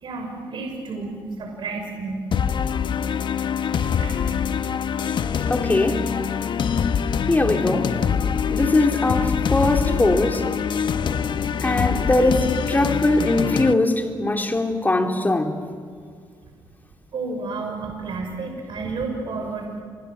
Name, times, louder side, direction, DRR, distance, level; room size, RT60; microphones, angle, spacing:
voice 1, 0.0-2.2 4.0-4.3 5.5-5.6 17.1-19.8, right 3 dB, 60° right, 2 dB, 6.2 m, -31 dB
sound 1, 2.3-13.7, left 7 dB, 55° left, 1.3 m, -24 dB
voice 2, 5.5-6.0 7.3-8.0 8.5-10.4 11.6-15.5, left 2 dB, 20° left, 3 dB, 4.2 m, -21 dB
29.5 x 26.0 x 7.6 m, 2.1 s
supercardioid pair, 65°, 9 cm